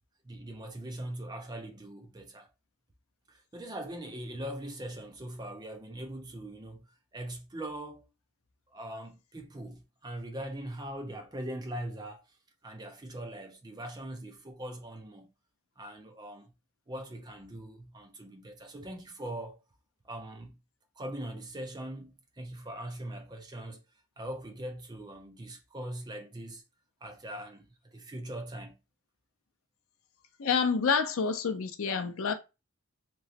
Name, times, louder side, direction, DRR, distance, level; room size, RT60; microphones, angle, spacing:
voice 1, 0.2-2.5 3.3-6.9 7.1-8.1 8.7-12.2 12.6-15.3 15.8-16.5 16.9-19.6 20.0-20.5 21.0-23.8 24.2-26.6 27.0-28.8, right 1 dB, 20° right, 0.5 m, -41 dB
voice 2, 30.4-32.3, left 5 dB, 65° left, 0.5 m, -28 dB
3.0 x 3.0 x 2.8 m
head